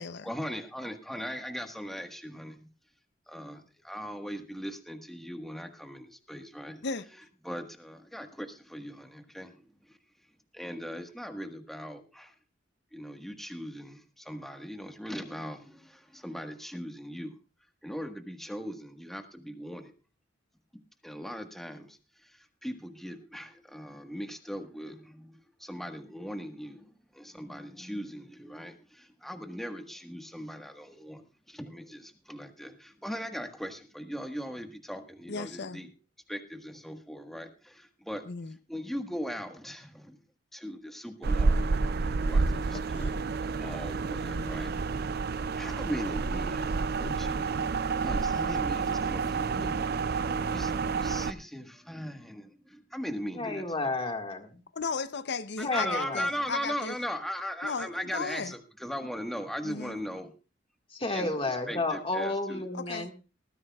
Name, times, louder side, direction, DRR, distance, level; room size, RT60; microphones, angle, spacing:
voice 1, 0.2-2.7 3.3-6.9 7.4-9.6 10.5-12.3 12.9-17.4 17.8-19.9 21.0-22.0 22.6-26.8 27.1-35.9 36.3-38.2 38.7-40.2 40.5-44.7 45.6-53.6 55.6-60.3 61.1-62.7, equal, ahead, 1.4 m, -39 dB
voice 2, 35.3-35.8 38.3-38.6 42.7-43.1 44.2-44.6 54.7-56.9 57.6-58.5 59.6-60.0 62.7-63.1, left 4 dB, 60° left, 0.7 m, -36 dB
sound 1, 41.2-51.3, right 4 dB, 55° right, 0.5 m, -29 dB
voice 3, 53.3-54.6 55.6-56.3 60.9-63.1, left 2 dB, 30° left, 1.7 m, -31 dB
19.5 x 14.0 x 2.3 m
head